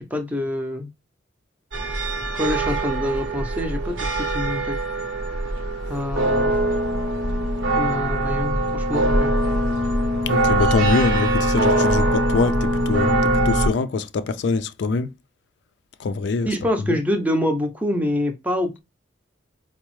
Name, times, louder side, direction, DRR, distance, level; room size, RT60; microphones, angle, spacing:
voice 1, 0.1-0.9 2.4-4.1 4.3-4.7 5.9-6.5 7.7-9.3 16.5-18.8, left 1 dB, 10° right, 0.5 m, -25 dB
sound 1, 1.7-13.7, right 1 dB, 80° right, 0.8 m, -22 dB
voice 2, 10.3-15.1 16.0-16.5, left 4 dB, 60° left, 0.3 m, -24 dB
4.5 x 2.0 x 3.0 m
head